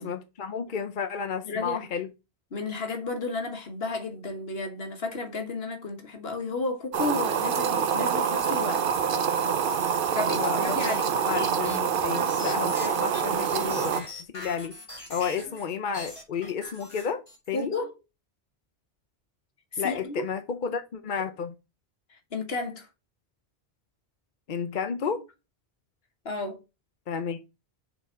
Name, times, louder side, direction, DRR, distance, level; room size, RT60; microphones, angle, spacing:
voice 1, 0.0-2.1 10.3-10.9 11.3-14.1 14.3-14.8 15.1-17.7 19.8-21.5 24.5-25.2 27.1-27.4, left 6 dB, 55° left, 0.8 m, -32 dB
voice 2, 1.4-1.9 2.5-8.8 10.1-11.2 17.5-17.9 19.7-20.2 22.3-22.9 26.2-26.6, left 3 dB, 70° left, 1.6 m, -32 dB
sound 1, 6.9-14.0, right 7 dB, 60° right, 0.8 m, -26 dB
sound 2, 10.6-15.7 15.9-17.6, left 1 dB, 30° left, 2.7 m, -41 dB
7.0 x 3.8 x 4.5 m
omnidirectional pair, 1.1 m